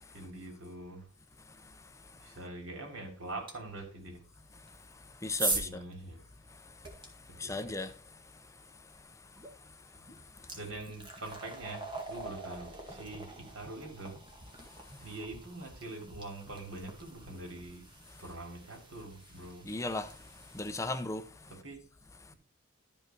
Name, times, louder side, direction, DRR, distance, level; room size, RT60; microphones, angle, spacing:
voice 1, 0.1-1.1 2.2-4.2 5.5-6.2 7.4-7.8 10.6-14.2 15.0-17.8 18.2-19.7 21.5-21.8, right 2 dB, 85° right, 3.5 m, -44 dB
sound 1, 3.5-3.6 4.6-7.1 9.4-9.5 9.9-20.9, right 2 dB, 25° right, 2.0 m, -42 dB
voice 2, 5.2-5.8 7.4-7.9 19.7-21.5, left 2 dB, 15° left, 0.6 m, -36 dB
12.5 x 5.5 x 4.6 m
head